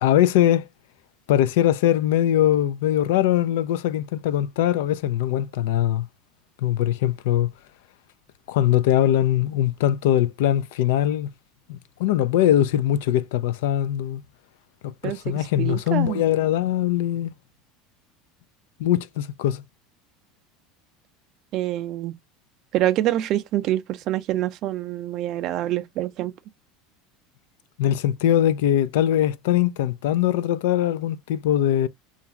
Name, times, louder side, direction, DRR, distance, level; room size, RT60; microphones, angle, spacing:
voice 1, 0.0-0.7 1.3-6.1 6.6-7.5 8.5-11.3 11.7-14.2 14.8-17.3 18.8-19.6 27.8-31.9, left 11 dB, 75° left, 0.3 m, -21 dB
voice 2, 15.0-16.2 21.5-22.1 22.7-26.3, right 14 dB, 55° right, 0.4 m, -26 dB
2.4 x 2.4 x 2.7 m
hypercardioid pair, 85°, 0 cm